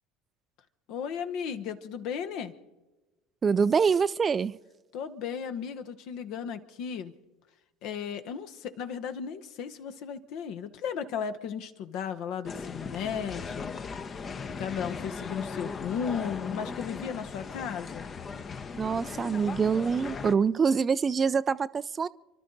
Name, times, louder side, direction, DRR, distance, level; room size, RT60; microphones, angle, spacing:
voice 1, 0.9-2.5 4.9-7.1 7.8-13.7 14.6-18.1, left 7 dB, 55° left, 9 dB, 1.1 m, -35 dB
voice 2, 3.4-4.5 18.8-22.1, right 6 dB, 30° right, 17 dB, 0.4 m, -25 dB
sound 1, 12.4-20.3, left 5 dB, 35° left, 0.9 m, -38 dB
29.5 x 12.5 x 3.9 m, 1.1 s
figure-of-eight pair, 65°, 0 cm